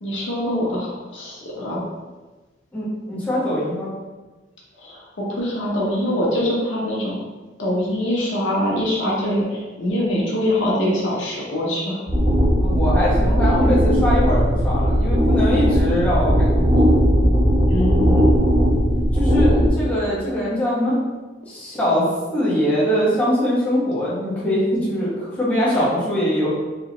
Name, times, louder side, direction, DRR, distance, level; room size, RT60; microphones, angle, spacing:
voice 1, 0.0-1.9 4.8-7.2 7.6-12.0 17.7-18.2 25.7-25.8, left 1 dB, 70° left, -5 dB, 1.0 m, -23 dB
voice 2, 2.7-3.9 12.6-16.8 19.1-20.9 21.5-26.6, equal, 10° left, -10 dB, 1.3 m, -22 dB
sound 1, 12.1-19.7, equal, 30° right, 0.9 m, -17 dB
4.1 x 3.0 x 2.9 m, 1.2 s
head